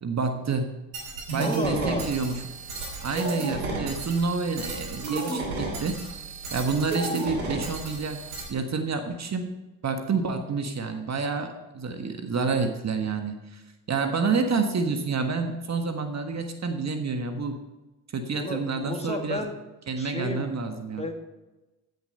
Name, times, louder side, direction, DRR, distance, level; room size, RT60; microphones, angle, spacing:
voice 1, 0.0-0.8 1.3-2.4 3.0-6.0 6.5-8.2 8.5-9.5 9.8-13.6 13.9-17.6 18.1-19.4 19.9-21.0, right 4 dB, 40° right, 7 dB, 1.5 m, -28 dB
sound 1, 0.9-8.4, right 3 dB, 85° right, 2.8 m, -33 dB
voice 2, 1.4-2.1 18.3-19.6 20.0-20.5 21.0-21.1, left 1 dB, 15° left, 4 dB, 2.2 m, -32 dB
15.0 x 6.8 x 5.5 m, 1.1 s
hypercardioid pair, 50°, 42 cm